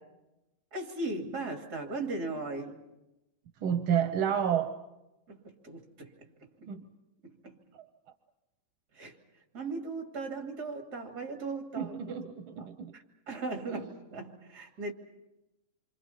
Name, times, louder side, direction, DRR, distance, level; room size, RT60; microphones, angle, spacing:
voice 1, 0.7-2.8 5.3-6.3 6.6-6.7 7.2-7.6 9.0-9.1 9.5-12.1 12.6-12.7 12.9-14.9, right 3 dB, 50° right, 3.1 m, -38 dB
voice 2, 3.6-4.7 6.7-6.9 7.7-7.8 11.8-12.2 12.6-12.9 13.7-13.8, right 8 dB, 85° right, 1.8 m, -30 dB
28.0 x 25.5 x 5.7 m
omnidirectional pair, 2.2 m